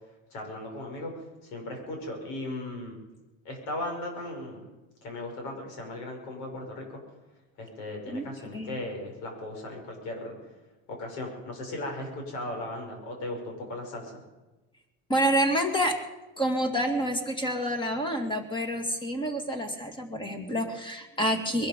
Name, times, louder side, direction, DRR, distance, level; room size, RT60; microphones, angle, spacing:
voice 1, 0.3-1.3 1.5-3.0 3.4-4.6 5.0-7.0 7.6-10.4 10.9-14.2, left 1 dB, 85° left, 2 dB, 6.1 m, -37 dB
voice 2, 15.1-16.0 16.4-21.7, equal, 15° left, 6 dB, 2.1 m, -28 dB
21.5 x 12.0 x 5.3 m, 1.1 s
cardioid pair, 145°, 32 cm